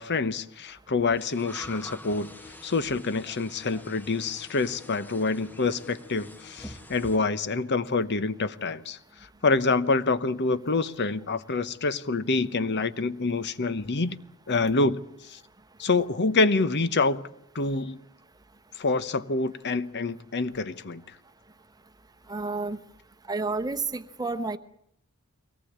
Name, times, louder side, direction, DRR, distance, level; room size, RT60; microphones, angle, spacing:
voice 1, 0.0-2.3 2.6-9.0 9.4-14.2 14.5-15.4 15.8-17.2 17.5-18.0 18.8-21.0, left 3 dB, 50° left, 1.0 m, -26 dB
sound 1, 1.2-7.2, left 1 dB, 10° left, 1.2 m, -46 dB
voice 2, 22.3-22.8 23.3-24.6, right 3 dB, 15° right, 1.0 m, -30 dB
23.5 x 18.0 x 8.7 m
head